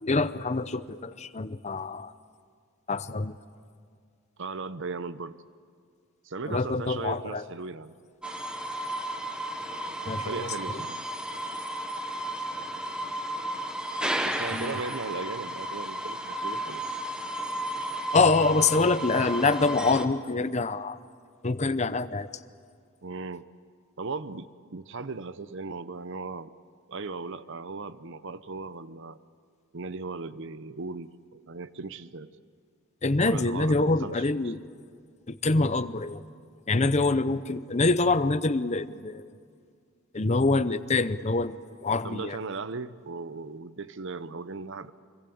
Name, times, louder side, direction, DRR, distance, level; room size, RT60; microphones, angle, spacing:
voice 1, 0.0-2.1 2.9-3.4 6.5-7.4 10.1-10.3 10.7-10.8 14.5-14.8 18.1-21.0 21.4-22.3 33.0-34.6 35.3-36.3 36.7-39.3 40.1-42.4, left 3 dB, 30° left, 13 dB, 0.7 m, -25 dB
voice 2, 4.4-5.4 6.2-8.0 10.0-11.0 14.2-16.8 23.0-23.5 24.0-26.5 26.9-29.2 29.7-32.3 33.2-34.5 42.0-44.9, right 4 dB, 55° right, 14 dB, 0.8 m, -37 dB
sound 1, 8.2-20.0, right 1 dB, 5° right, 1.0 m, -33 dB
25.0 x 23.0 x 8.6 m, 2.2 s
head